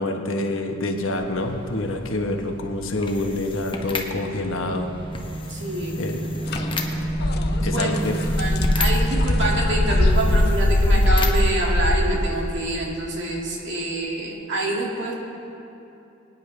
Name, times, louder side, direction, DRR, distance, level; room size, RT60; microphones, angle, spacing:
voice 1, 0.0-4.9 6.0-6.2 7.6-8.4, left 2 dB, 70° left, 4 dB, 1.1 m, -27 dB
sound 1, 1.0-12.9, left 2 dB, 25° left, 1.0 m, -35 dB
sound 2, 4.3-10.6, right 1 dB, 25° right, 0.7 m, -30 dB
voice 2, 5.5-6.0 7.6-8.0 8.4-15.1, right 1 dB, 60° right, -2 dB, 2.2 m, -26 dB
sound 3, 6.5-6.6 6.9-12.0, left 1 dB, 55° left, 0.8 m, -20 dB
22.5 x 9.9 x 3.3 m, 2.9 s
head